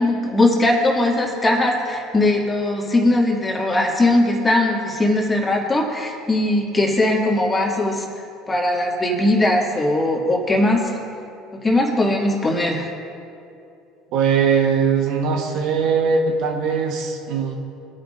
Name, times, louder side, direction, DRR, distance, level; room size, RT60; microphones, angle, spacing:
voice 1, 0.0-8.0 8.5-10.9 11.6-12.9, left 1 dB, 20° left, -1 dB, 2.3 m, -19 dB
voice 2, 14.1-17.5, right 6 dB, 65° right, 2 dB, 1.3 m, -20 dB
19.5 x 9.6 x 2.6 m, 2.6 s
hypercardioid pair, 75°, 0 cm